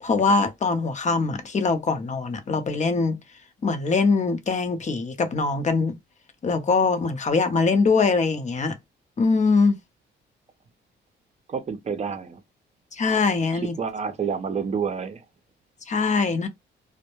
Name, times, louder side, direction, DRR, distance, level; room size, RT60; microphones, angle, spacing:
voice 1, 0.0-3.2 3.6-6.0 6.4-8.8 9.2-9.8 12.9-13.7 15.9-16.5, left 4 dB, 35° left, 0.7 m, -22 dB
voice 2, 11.5-12.4 13.8-15.2, right 6 dB, 35° right, 0.6 m, -28 dB
2.1 x 2.1 x 2.9 m
cardioid pair, 90°, 20 cm